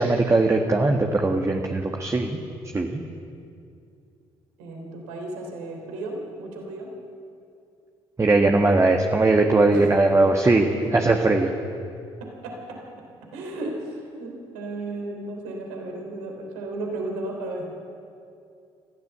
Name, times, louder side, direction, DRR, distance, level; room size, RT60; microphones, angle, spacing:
voice 1, 0.0-2.4 2.7-3.0 8.2-11.5, right 2 dB, 20° right, 3 dB, 1.7 m, -20 dB
voice 2, 4.6-6.9 9.7-9.9 12.4-12.8 13.3-17.6, right 2 dB, 65° right, 1 dB, 3.4 m, -34 dB
27.0 x 15.5 x 7.0 m, 2.5 s
figure-of-eight pair, 45°, 14 cm